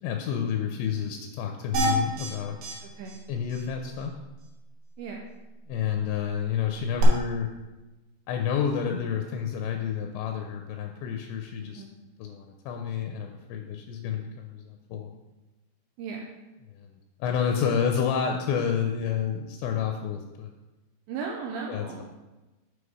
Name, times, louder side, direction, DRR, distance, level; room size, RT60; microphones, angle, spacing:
voice 1, 0.0-2.6 3.3-4.1 5.7-7.5 8.3-11.8 12.2-15.1 16.7-20.5 21.7-22.0, left 7 dB, 85° left, 3 dB, 2.6 m, -29 dB
sound 1, 1.7-2.3 2.6-2.7 3.1-3.2 3.5-3.6 7.0-7.1, right 2 dB, 70° right, 3.6 m, -26 dB
voice 2, 2.8-3.2 5.0-5.2 11.6-11.9 16.0-16.2 21.1-22.0, right 5 dB, 90° right, 0 dB, 2.6 m, -36 dB
8.2 x 5.0 x 4.8 m, 1.1 s
omnidirectional pair, 5.9 m